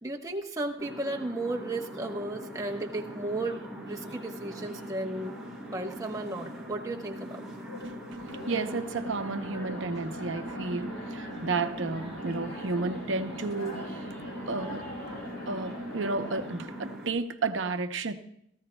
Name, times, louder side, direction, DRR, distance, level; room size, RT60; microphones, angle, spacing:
voice 1, 0.0-5.3 5.7-7.4, right 2 dB, 15° right, 1 dB, 1.0 m, -34 dB
sound 1, 0.8-17.1, equal, ahead, 3.8 m, -41 dB
voice 2, 7.8-14.0 14.5-14.8 15.1-15.2 15.5-18.1, right 3 dB, 70° right, 9 dB, 0.8 m, -32 dB
sound 2, 8.3-16.6, equal, 60° left, 5.2 m, -42 dB
18.0 x 14.5 x 2.3 m, 0.73 s
head